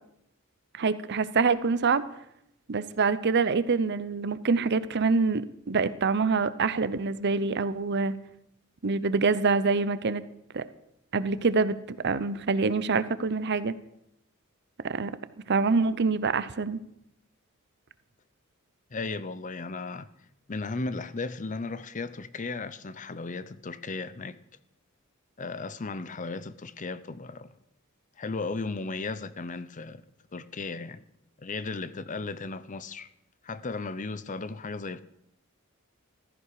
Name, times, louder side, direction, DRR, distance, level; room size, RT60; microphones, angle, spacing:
voice 1, 0.7-2.0 2.7-8.1 8.8-10.2 10.5-10.6 11.1-13.8 14.8-15.1 15.5-16.8, right 4 dB, 55° right, 0.7 m, -25 dB
voice 2, 18.9-20.1 20.5-24.4 25.4-27.5 28.2-30.0 30.3-31.0 31.4-33.1 33.4-35.0, left 3 dB, 40° left, 0.7 m, -35 dB
15.5 x 13.5 x 4.8 m
head